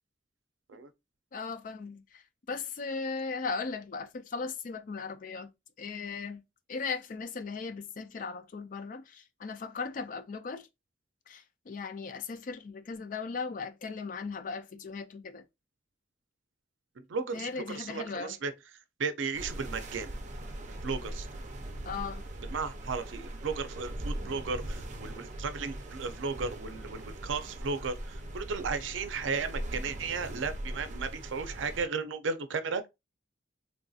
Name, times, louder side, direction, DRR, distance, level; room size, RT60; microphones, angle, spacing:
voice 1, 1.3-2.2 2.5-5.5 5.8-6.4 6.7-10.7 11.3-15.4 17.3-18.3 21.9-22.2, left 4 dB, 45° left, 0.4 m, -37 dB
voice 2, 17.0-18.5 19.0-20.1 20.7-21.3 22.4-32.9, right 5 dB, 85° right, 0.5 m, -35 dB
sound 1, 19.3-31.9, right 1 dB, 40° right, 0.5 m, -40 dB
3.4 x 2.6 x 2.3 m
head